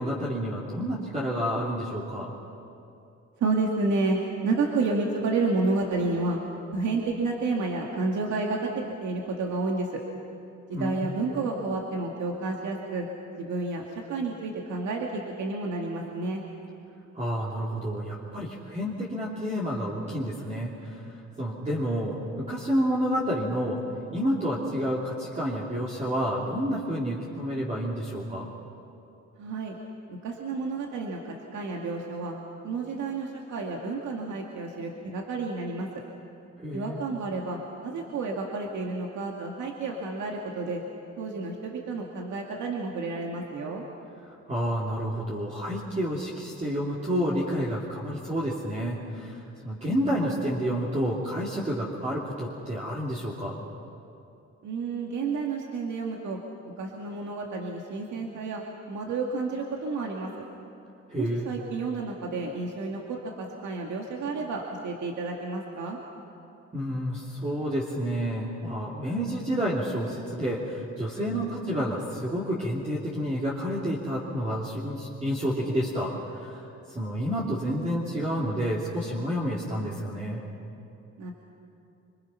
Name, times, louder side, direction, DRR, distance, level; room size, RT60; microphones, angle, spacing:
voice 1, 0.0-2.3 10.7-11.1 17.1-21.0 21.4-23.8 24.1-28.5 36.6-37.0 44.5-53.6 61.1-61.5 66.7-80.4, equal, 25° right, -6 dB, 3.1 m, -29 dB
voice 2, 3.4-6.4 6.7-9.9 10.7-13.1 13.4-16.4 29.4-29.8 30.2-32.3 32.6-35.9 36.7-40.8 41.2-43.8 54.6-56.4 56.8-58.6 58.9-60.3 61.2-66.0 81.2-81.3, right 3 dB, 75° right, 0 dB, 2.1 m, -30 dB
26.5 x 25.0 x 5.8 m, 2.8 s
cardioid pair, 125°, 29 cm